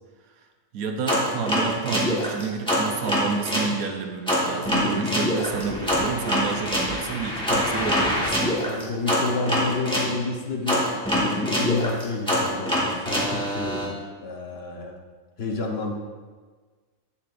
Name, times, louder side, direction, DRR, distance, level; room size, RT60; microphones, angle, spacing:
voice 1, 0.7-8.5, right 5 dB, 90° right, 5 dB, 1.2 m, -30 dB
sound 1, 1.1-3.7 4.3-10.1 10.7-13.9, equal, 5° left, 1.2 m, -24 dB
voice 2, 8.6-15.0 15.4-15.9, left 3 dB, 50° left, 1 dB, 1.0 m, -30 dB
8.4 x 7.2 x 2.5 m, 1.4 s
omnidirectional pair, 1.4 m